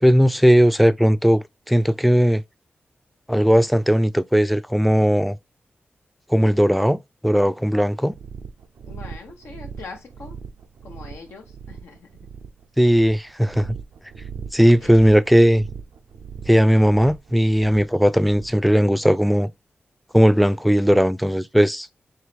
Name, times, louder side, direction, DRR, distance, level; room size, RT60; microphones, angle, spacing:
voice 1, 0.0-2.4 3.3-5.4 6.3-8.1 12.8-13.8 14.5-15.7 16.5-19.5 20.1-21.9, equal, ahead, 0.4 m, -17 dB
sound 1, 8.1-18.7, right 6 dB, 85° right, 0.5 m, -39 dB
voice 2, 8.9-10.4 10.8-12.3 14.8-15.2, left 4 dB, 85° left, 0.9 m, -42 dB
4.6 x 3.0 x 3.2 m
cardioid pair, 50°, 4 cm